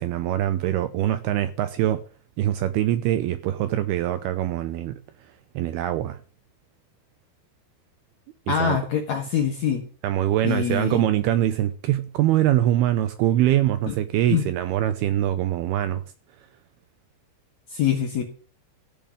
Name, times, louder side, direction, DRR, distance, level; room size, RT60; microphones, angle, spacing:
voice 1, 0.0-2.0 2.4-5.0 5.6-6.2 8.5-8.8 10.0-16.0, right 12 dB, 85° right, 2.2 m, -23 dB
voice 2, 8.5-9.8 10.4-11.0 13.9-14.0 14.3-14.5 17.7-18.2, left 8 dB, 70° left, 1.7 m, -24 dB
14.5 x 5.4 x 8.8 m
omnidirectional pair, 5.3 m